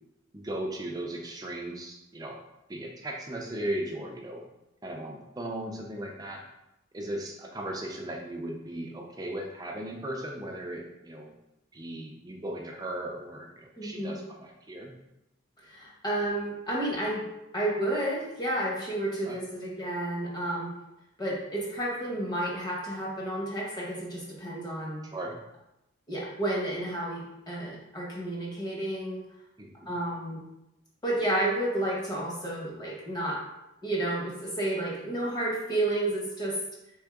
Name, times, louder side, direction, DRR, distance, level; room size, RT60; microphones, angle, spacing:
voice 1, 0.3-2.4 2.7-4.4 4.8-6.4 6.9-11.3 11.7-14.9 19.3-19.4 25.1-25.3 29.6-29.9, right 1 dB, 20° right, 0 dB, 0.4 m, -37 dB
voice 2, 13.8-14.2 15.7-17.2 17.5-20.7 21.2-25.1 26.1-29.2 29.9-30.4 31.0-33.4 33.8-36.6, right 1 dB, 20° left, -4 dB, 1.0 m, -31 dB
3.7 x 3.6 x 3.6 m, 0.89 s
head